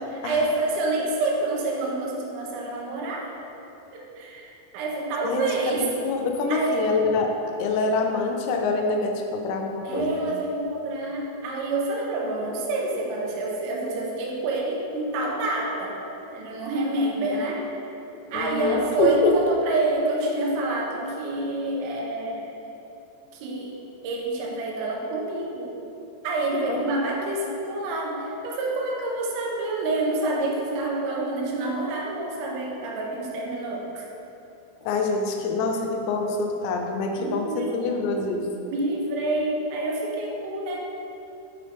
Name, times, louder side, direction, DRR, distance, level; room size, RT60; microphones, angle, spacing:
voice 1, 0.1-3.3 3.9-5.9 6.5-7.0 9.8-16.0 16.3-17.7 18.3-22.4 23.3-23.8 24.0-25.7 26.2-34.1 37.2-37.9 38.7-40.8, right 2 dB, 80° right, -2 dB, 2.4 m, -27 dB
voice 2, 5.2-7.3 7.6-10.1 18.3-19.4 26.6-26.8 34.9-38.5, left 3 dB, 85° left, 2 dB, 2.8 m, -25 dB
6.8 x 5.2 x 3.4 m, 2.9 s
omnidirectional pair, 5.1 m